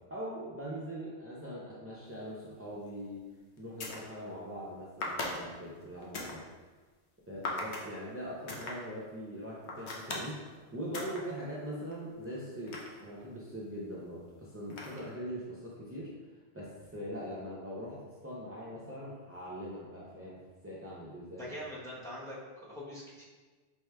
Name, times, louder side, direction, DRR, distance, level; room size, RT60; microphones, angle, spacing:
voice 1, 0.0-3.2 3.6-6.5 7.3-16.1 16.5-21.5, equal, 25° right, -8 dB, 0.3 m, -42 dB
sound 1, 2.9-3.0 3.6-4.1 5.0-6.4 7.4-7.9 8.5-8.7 9.6-10.3 10.9-11.2 11.6-13.4 14.7-15.2, left 2 dB, 90° left, 1.0 m, -38 dB
voice 2, 21.3-23.2, equal, 5° left, -7 dB, 0.7 m, -43 dB
4.6 x 3.4 x 2.2 m, 1.3 s
omnidirectional pair, 1.1 m